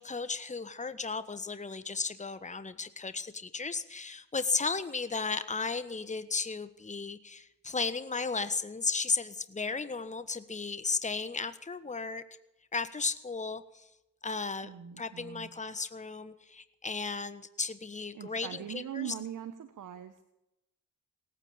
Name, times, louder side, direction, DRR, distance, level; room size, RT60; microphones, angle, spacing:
voice 1, 0.0-12.2 12.7-13.9 14.2-14.7 15.0-19.1, left 4 dB, 20° left, 11 dB, 1.3 m, -35 dB
voice 2, 14.6-15.5 18.1-20.2, right 9 dB, 65° right, 10 dB, 1.4 m, -41 dB
18.0 x 9.1 x 8.8 m, 0.89 s
supercardioid pair, 55°, 33 cm